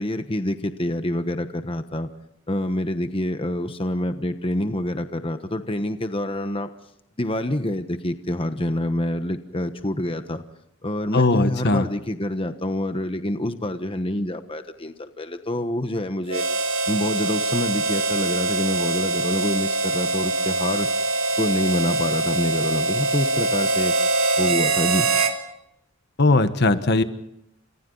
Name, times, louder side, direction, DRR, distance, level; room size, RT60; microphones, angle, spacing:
voice 1, 0.0-2.1 2.5-6.7 7.2-10.4 10.8-16.4 16.9-20.9 21.4-23.9 24.4-25.1, left 1 dB, 25° left, 8 dB, 1.2 m, -26 dB
voice 2, 11.1-11.8 26.2-27.0, left 2 dB, 50° left, 10 dB, 1.3 m, -19 dB
Harmonica, 16.3-25.4, right 3 dB, 80° right, 2.8 m, -23 dB
30.0 x 27.0 x 4.0 m, 0.79 s
head